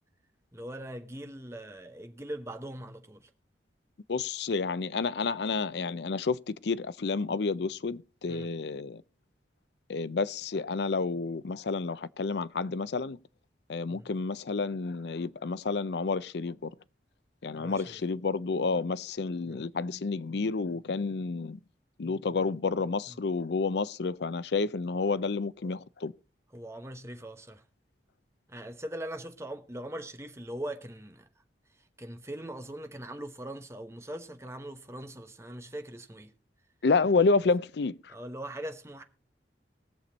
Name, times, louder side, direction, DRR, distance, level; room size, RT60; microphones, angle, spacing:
voice 1, 0.5-3.3 8.3-8.5 13.9-14.1 17.5-18.0 19.5-19.6 23.1-23.2 26.5-27.6 28.5-31.3 32.0-36.3 38.1-39.0, right 1 dB, 15° right, 1.0 m, -41 dB
voice 2, 4.1-9.0 9.9-13.2 13.7-16.7 17.4-21.6 22.0-26.1 36.8-38.1, left 4 dB, 65° left, 0.5 m, -30 dB
20.5 x 6.9 x 4.0 m
head